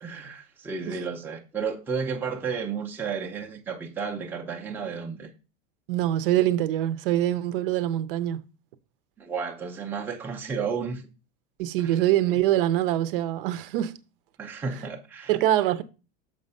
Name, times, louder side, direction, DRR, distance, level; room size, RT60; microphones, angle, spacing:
voice 1, 0.0-5.3 9.2-11.1 11.8-12.0 14.4-15.4, right 5 dB, 5° right, 0.6 m, -32 dB
voice 2, 5.9-8.4 11.6-14.0 15.3-15.8, right 13 dB, 70° right, 0.8 m, -24 dB
6.8 x 5.4 x 5.3 m
supercardioid pair, 180°, 29 cm